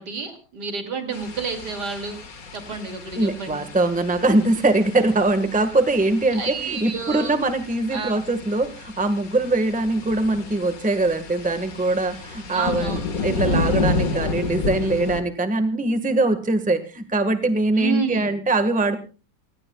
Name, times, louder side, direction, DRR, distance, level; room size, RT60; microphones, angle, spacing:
voice 1, 0.0-2.2 2.5-3.7 6.3-7.3 7.9-8.2 12.5-13.2 17.7-18.3, right 5 dB, 70° right, 6 dB, 3.1 m, -30 dB
sound 1, 1.1-15.2, left 3 dB, 55° left, 2.0 m, -31 dB
voice 2, 3.2-19.0, right 2 dB, 5° right, 9 dB, 1.3 m, -22 dB
29.5 x 17.0 x 2.3 m, 0.34 s
omnidirectional pair, 1.8 m